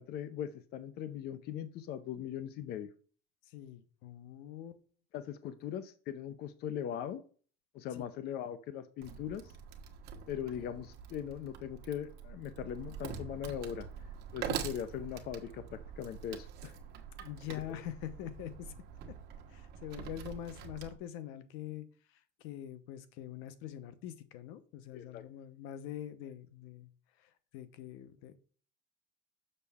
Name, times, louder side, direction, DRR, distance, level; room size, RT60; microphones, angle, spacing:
voice 1, 0.0-2.9 5.1-7.2 7.7-9.4 10.3-13.9 14.3-16.8 17.5-17.8 24.9-25.2, left 9 dB, 50° left, 0.6 m, -40 dB
voice 2, 3.5-4.8 5.4-5.5 7.9-8.1 17.2-18.7 19.1-19.2 19.5-21.9 22.1-26.9 27.2-28.4, left 11 dB, 85° left, 0.9 m, -44 dB
Wood, 9.0-21.0, right 7 dB, 55° right, 1.2 m, -45 dB
6.7 x 6.6 x 3.5 m
cardioid pair, 145°, 20 cm